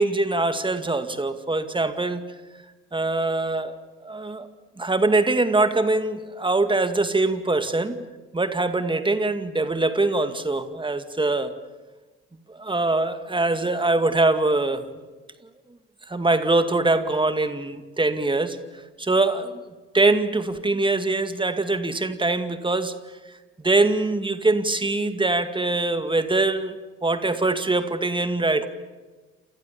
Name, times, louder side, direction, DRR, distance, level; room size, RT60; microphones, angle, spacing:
voice 1, 0.0-2.2 2.9-3.8 4.0-4.5 4.8-8.0 8.3-11.5 12.5-14.9 16.1-23.0 23.6-28.7, right 2 dB, 10° right, 2.3 m, -23 dB
28.5 x 28.5 x 7.3 m
figure-of-eight pair, 55°, 38 cm